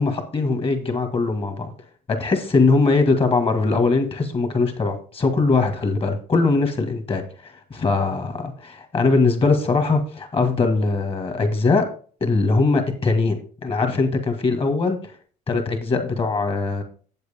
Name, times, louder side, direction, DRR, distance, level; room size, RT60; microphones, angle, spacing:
voice 1, 0.0-1.7 2.1-11.9 12.2-15.0 15.5-16.8, left 3 dB, 35° left, 6 dB, 1.8 m, -21 dB
8.0 x 7.9 x 3.6 m, 0.41 s
cardioid pair, 110°, 17 cm